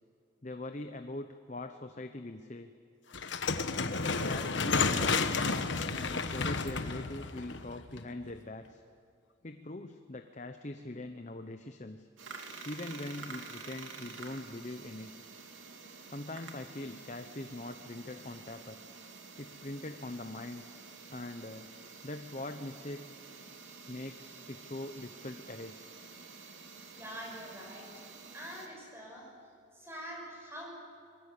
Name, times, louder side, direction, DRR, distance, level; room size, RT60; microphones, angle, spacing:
voice 1, 0.4-2.7 3.8-5.4 5.9-8.8 9.4-12.1 12.6-15.1 16.1-18.8 19.4-20.6 21.1-21.7 22.0-23.1 23.8-25.9, left 2 dB, 35° left, 7 dB, 0.9 m, -42 dB
sound 1, 3.1-8.3, left 4 dB, 70° left, 1.3 m, -31 dB
sound 2, 12.2-28.7, right 4 dB, 85° right, 3.0 m, -49 dB
voice 2, 26.9-27.9 28.3-29.3 29.7-30.7, equal, 15° right, -2 dB, 6.4 m, -44 dB
25.5 x 21.5 x 8.5 m, 2.4 s
head